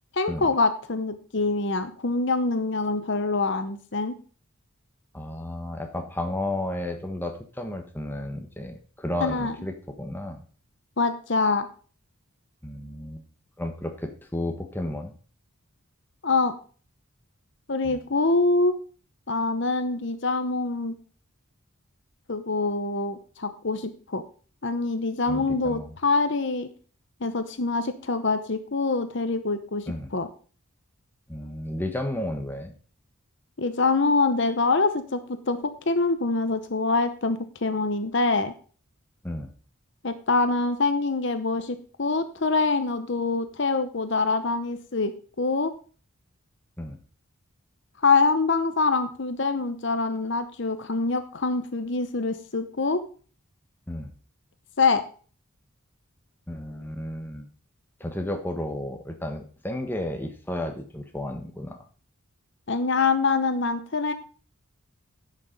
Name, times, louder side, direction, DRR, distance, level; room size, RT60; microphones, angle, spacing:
voice 1, 0.1-4.1 9.2-9.5 11.0-11.7 16.2-16.5 17.7-18.7 19.3-20.9 22.3-24.2 24.6-26.7 27.2-29.8 30.1-30.3 33.6-38.5 40.0-45.7 48.0-53.0 54.8-55.0 62.7-64.1, left 3 dB, 55° left, 10 dB, 0.9 m, -25 dB
voice 2, 5.1-10.4 12.6-13.2 13.6-15.1 17.8-18.0 25.3-25.9 29.9-30.1 31.3-32.7 39.2-39.5 46.8-47.0 53.9-54.1 56.5-57.5 58.0-61.8, left 1 dB, 10° left, 4 dB, 1.2 m, -33 dB
10.5 x 6.5 x 5.2 m, 0.40 s
head